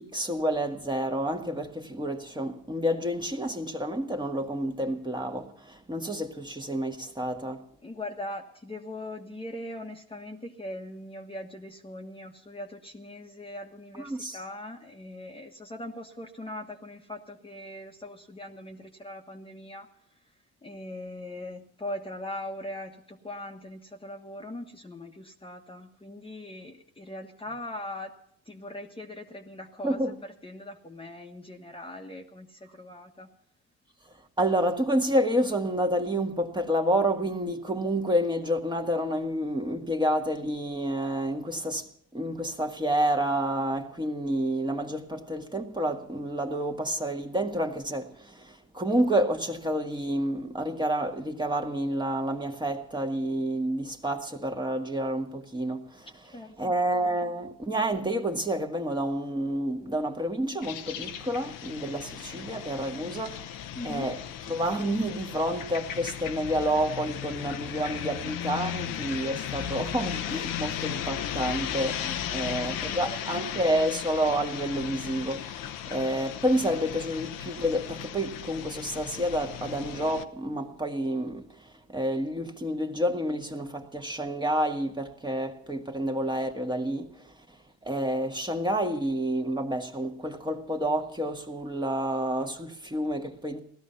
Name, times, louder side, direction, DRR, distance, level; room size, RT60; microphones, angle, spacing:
voice 1, 0.0-7.6 14.0-14.4 29.8-30.1 34.4-41.9 42.1-56.1 56.6-63.5 63.8-64.2 64.5-87.6 87.8-93.6, right 1 dB, 15° right, 1.8 m, -29 dB
voice 2, 7.8-19.9 20.6-28.2 28.4-33.3 56.3-56.7 63.7-64.1 72.1-73.6, left 1 dB, 15° left, 1.5 m, -40 dB
sound 1, 60.6-80.2, left 10 dB, 70° left, 1.1 m, -36 dB
17.0 x 12.5 x 5.6 m
supercardioid pair, 80°, 34 cm